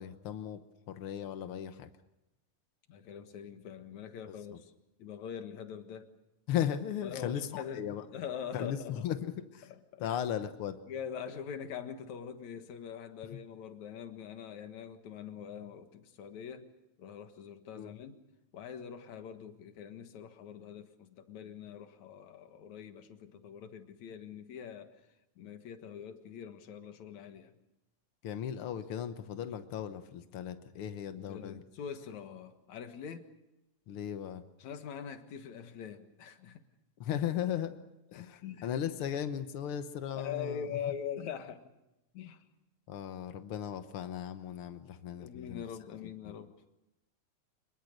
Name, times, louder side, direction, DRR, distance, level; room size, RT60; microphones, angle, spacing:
voice 1, 0.0-1.9 4.3-4.4 6.5-8.0 8.5-9.7 10.0-10.8 17.7-17.9 28.2-31.6 33.9-34.4 37.0-37.8 38.1-40.7 42.9-45.6 46.0-46.4, left 10 dB, 90° left, 9 dB, 1.2 m, -37 dB
voice 2, 2.9-4.7 5.0-6.1 7.0-9.0 9.7-10.2 10.9-16.7 17.0-18.2 18.5-25.1 25.4-27.6 31.2-33.3 34.6-36.6 38.1-38.8 40.2-41.7 42.1-42.4 45.2-46.5, left 8 dB, 60° left, 7 dB, 2.7 m, -43 dB
26.0 x 22.0 x 6.6 m, 0.93 s
omnidirectional pair, 4.0 m